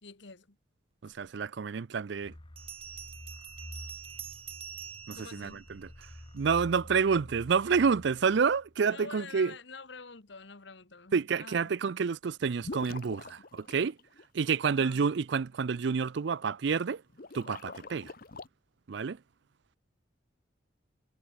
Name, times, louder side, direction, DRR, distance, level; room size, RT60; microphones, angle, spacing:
voice 1, 0.0-0.6 5.1-5.7 8.9-11.7 14.6-15.0, left 4 dB, 65° left, 1.5 m, -47 dB
voice 2, 1.0-2.3 5.1-5.9 6.3-9.5 11.1-14.0 14.3-17.0 17.3-18.1 18.9-19.2, right 5 dB, 65° right, 0.4 m, -29 dB
sound 1, 2.2-8.7, left 1 dB, 25° left, 1.2 m, -49 dB
Bell, 2.6-6.4, right 9 dB, 30° right, 1.3 m, -46 dB
sound 2, 12.6-14.5 17.1-18.5, left 3 dB, 45° left, 0.9 m, -44 dB
head